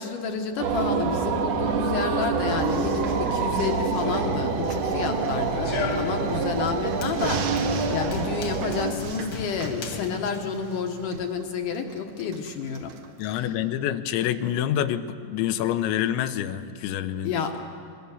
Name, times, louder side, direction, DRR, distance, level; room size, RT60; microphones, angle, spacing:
voice 1, 0.0-12.9 13.2-13.6 17.2-17.6, left 6 dB, 65° left, 4 dB, 2.1 m, -30 dB
sound 1, 0.6-8.9, right 5 dB, 85° right, 3.8 m, -26 dB
sound 2, 2.5-13.3, right 5 dB, 65° right, 1.8 m, -39 dB
Run, 3.3-11.0, left 4 dB, 50° left, 1.8 m, -37 dB
voice 2, 13.2-17.3, left 11 dB, 85° left, 10 dB, 3.2 m, -27 dB
23.0 x 22.5 x 7.3 m, 2.5 s
omnidirectional pair, 5.1 m